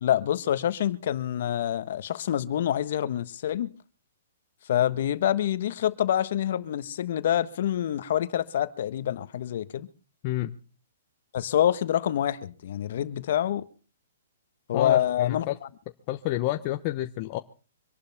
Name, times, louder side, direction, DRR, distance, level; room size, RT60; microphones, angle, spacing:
voice 1, 0.0-3.7 4.7-9.9 11.3-13.6 14.7-15.5, left 11 dB, 55° left, 14 dB, 1.4 m, -26 dB
voice 2, 10.2-10.6 14.7-15.6 16.1-17.4, left 15 dB, 30° left, 7 dB, 0.9 m, -29 dB
25.5 x 11.5 x 3.6 m, 0.36 s
hypercardioid pair, 160°, 0 cm